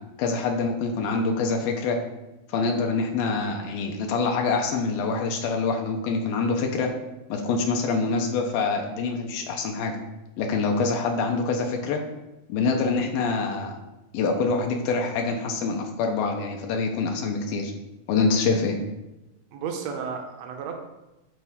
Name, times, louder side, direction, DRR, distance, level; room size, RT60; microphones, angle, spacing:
voice 1, 0.2-2.0 2.5-6.9 7.3-10.0 10.4-12.0 12.5-13.8 14.1-17.7 18.1-18.8, left 4 dB, 80° left, 2 dB, 2.5 m, -25 dB
voice 2, 19.5-20.8, right 6 dB, 85° right, 3 dB, 1.5 m, -33 dB
11.0 x 4.4 x 3.6 m, 0.98 s
omnidirectional pair, 4.3 m